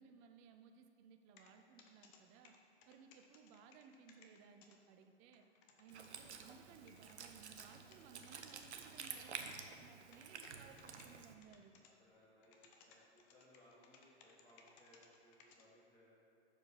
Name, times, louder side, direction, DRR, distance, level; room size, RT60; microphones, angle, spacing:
voice 1, 0.0-2.6 2.9-5.5 5.8-11.8, right 6 dB, 20° right, 6 dB, 0.3 m, -61 dB
sound 1, 1.4-1.5 1.8-2.2 2.4-4.8 5.0-5.1 5.3-6.2 6.9-7.2 7.6-8.6 9.0-9.7 10.1-11.1 11.4-11.9 12.2-15.6, left 6 dB, 35° left, 0.8 m, -64 dB
Wind instrument woodwind instrument, 5.9-11.3, right 6 dB, 80° right, 0.7 m, -51 dB
voice 2, 10.5-10.9 12.0-16.1, equal, 10° left, -10 dB, 1.7 m, -67 dB
6.4 x 4.9 x 5.5 m, 2.8 s
hypercardioid pair, 115°, 33 cm